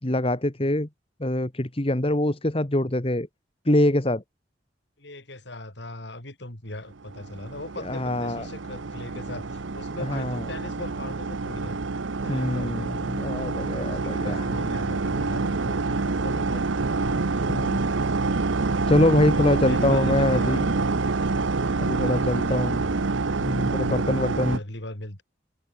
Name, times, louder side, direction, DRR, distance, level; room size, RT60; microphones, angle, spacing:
voice 1, 0.0-0.9 1.2-3.3 3.6-4.2 7.8-8.4 10.0-10.4 12.3-14.4 17.5-17.9 18.9-20.7 21.8-22.8 23.4-24.6, left 1 dB, 30° left, 1.5 m, -24 dB
voice 2, 5.0-11.8 12.2-13.2 13.8-17.7 19.4-20.8 22.0-22.9 23.9-25.2, left 1 dB, 65° left, 4.3 m, -40 dB
sound 1, 7.1-24.6, right 3 dB, 80° right, 0.9 m, -27 dB
head